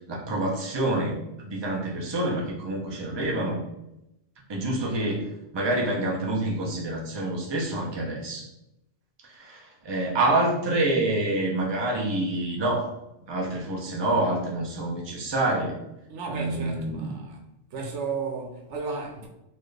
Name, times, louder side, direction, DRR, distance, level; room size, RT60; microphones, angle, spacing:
voice 1, 0.1-3.6 4.5-8.5 9.3-12.9 13.3-15.8 16.3-17.1, right 2 dB, 25° right, 0.7 m, -27 dB
voice 2, 16.1-17.4 17.7-19.3, right 4 dB, 85° right, 1.0 m, -33 dB
4.2 x 2.4 x 3.3 m
omnidirectional pair, 1.2 m